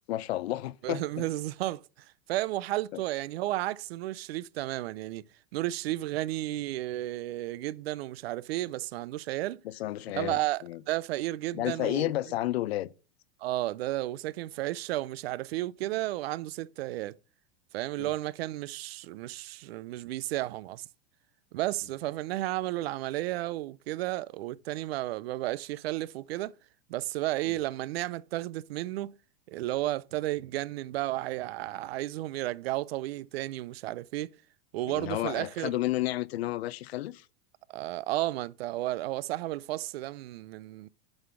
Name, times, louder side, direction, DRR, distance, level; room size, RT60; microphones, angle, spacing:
voice 1, 0.1-1.1 2.9-3.0 9.6-10.8 11.5-12.9 18.0-18.1 27.5-27.6 34.9-37.3, left 15 dB, 85° left, 0.7 m, -31 dB
voice 2, 0.8-1.8 2.3-5.2 5.5-9.6 10.1-12.1 13.4-17.2 17.7-20.9 21.5-26.5 26.9-29.2 29.5-34.3 34.7-35.8 37.7-40.9, right 16 dB, 80° right, 0.5 m, -33 dB
7.9 x 4.1 x 6.9 m
supercardioid pair, 140°, 30 cm